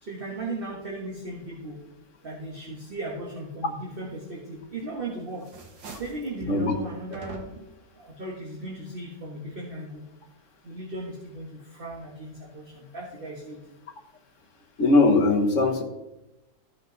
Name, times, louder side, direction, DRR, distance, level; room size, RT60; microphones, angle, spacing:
voice 1, 0.0-1.8 2.2-5.4 6.0-7.7 7.9-10.0 10.6-13.6, right 2 dB, 30° right, -2 dB, 1.5 m, -37 dB
sound 1, 4.6-5.0 5.3-6.3 7.1-7.8, right 3 dB, 90° right, 2.1 m, -43 dB
voice 2, 14.8-15.8, left 3 dB, 50° left, 3 dB, 1.2 m, -20 dB
14.5 x 5.4 x 3.9 m, 0.98 s
omnidirectional pair, 2.0 m